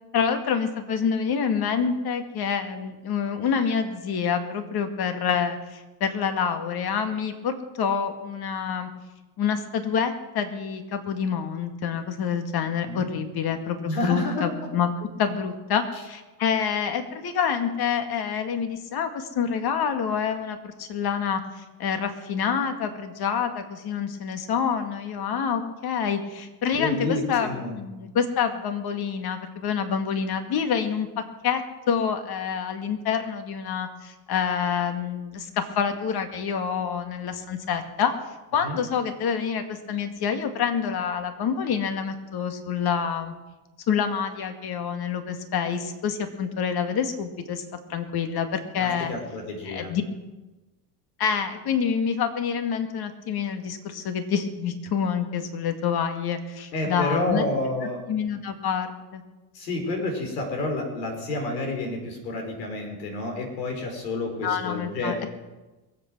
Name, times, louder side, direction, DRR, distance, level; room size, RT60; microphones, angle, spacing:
voice 1, 0.1-8.9 9.4-14.9 15.2-31.1 31.4-31.6 31.9-38.1 38.5-43.3 43.9-47.6 47.9-49.1 49.6-50.0 51.2-57.4 58.1-59.2 64.4-65.1, left 7 dB, 50° left, 7 dB, 2.1 m, -27 dB
voice 2, 13.9-14.4 26.7-27.8 38.6-38.8 48.8-50.0 56.7-58.0 59.5-65.3, left 2 dB, 85° left, 4 dB, 4.6 m, -29 dB
22.0 x 8.4 x 6.2 m, 1.1 s
supercardioid pair, 85°, 49 cm